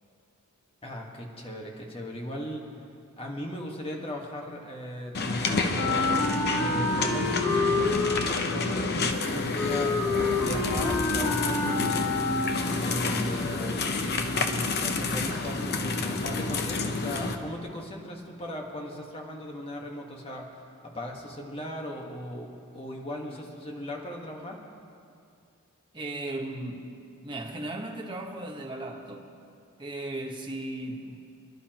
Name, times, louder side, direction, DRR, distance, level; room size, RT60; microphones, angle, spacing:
voice 1, 0.8-2.7 3.2-6.1 6.6-10.0 10.4-12.3 12.8-13.8 14.1-20.6 20.8-24.6, left 1 dB, 25° left, 0 dB, 1.5 m, -38 dB
sound 1, 5.1-17.4, left 3 dB, 45° left, 0.8 m, -29 dB
Wind instrument woodwind instrument, 5.7-12.7, left 3 dB, 70° left, 3.9 m, -28 dB
voice 2, 25.9-26.9 27.2-29.3 29.8-31.2, right 1 dB, 20° right, 0 dB, 1.3 m, -36 dB
27.5 x 11.5 x 3.0 m, 2.4 s
head